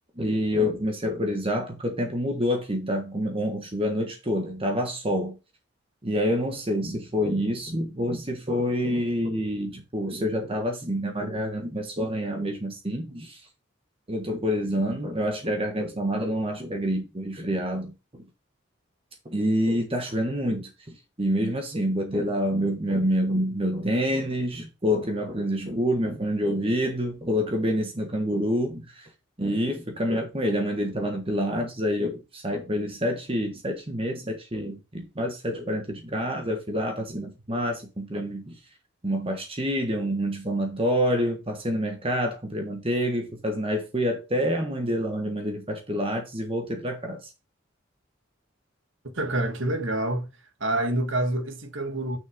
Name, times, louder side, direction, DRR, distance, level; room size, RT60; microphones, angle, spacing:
voice 1, 0.2-5.3 6.0-13.4 14.1-17.9 19.3-20.7 21.2-29.1 29.4-38.6 39.0-47.3, equal, 30° right, 1.4 m, -27 dB
voice 2, 49.1-50.3 50.6-52.2, right 1 dB, 70° right, 1.8 m, -27 dB
6.5 x 6.3 x 3.7 m
head